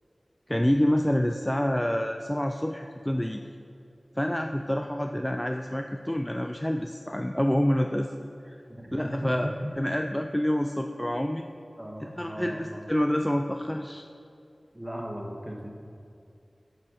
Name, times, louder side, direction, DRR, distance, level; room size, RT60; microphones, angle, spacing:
voice 1, 0.5-3.4 4.2-8.1 8.4-8.6 8.9-9.5 9.8-11.5 12.0-14.0, equal, 10° left, 4 dB, 0.4 m, -27 dB
voice 2, 8.7-9.7 11.8-12.9 14.7-15.7, equal, 15° right, 0 dB, 1.5 m, -37 dB
9.2 x 5.6 x 6.6 m, 2.5 s
wide cardioid pair, 50°, 0 cm